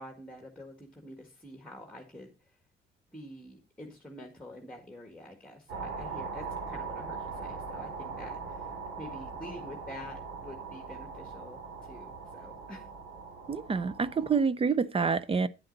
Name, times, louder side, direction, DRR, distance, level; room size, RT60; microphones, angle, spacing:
voice 1, 0.0-2.6 3.1-12.9, left 1 dB, 5° left, 1.7 m, -47 dB
sound 1, 5.7-14.4, right 4 dB, 90° right, 2.9 m, -41 dB
voice 2, 13.5-15.5, right 5 dB, 30° right, 0.5 m, -27 dB
9.0 x 7.7 x 4.0 m
cardioid pair, 90°, 20 cm